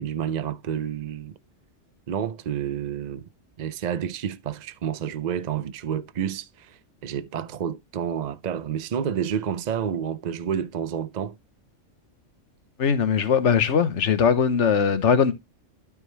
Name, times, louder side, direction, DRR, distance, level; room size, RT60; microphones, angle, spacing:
voice 1, 0.0-1.3 2.1-3.2 3.6-11.4, right 8 dB, 55° right, 0.5 m, -29 dB
voice 2, 12.8-15.3, left 6 dB, 70° left, 1.3 m, -20 dB
12.5 x 4.9 x 3.2 m
omnidirectional pair, 1.3 m